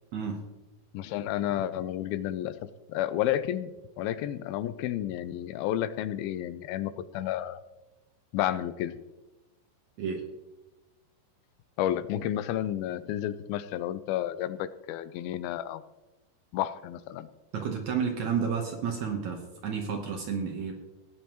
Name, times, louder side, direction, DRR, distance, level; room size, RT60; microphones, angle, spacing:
voice 1, 0.9-2.5 2.9-3.7 4.0-7.6 8.3-8.9 11.8-15.8 16.5-17.3, left 12 dB, 85° left, 13 dB, 2.3 m, -31 dB
voice 2, 17.5-20.7, right 6 dB, 65° right, 2 dB, 2.0 m, -31 dB
17.5 x 9.4 x 3.0 m, 1.1 s
omnidirectional pair, 4.3 m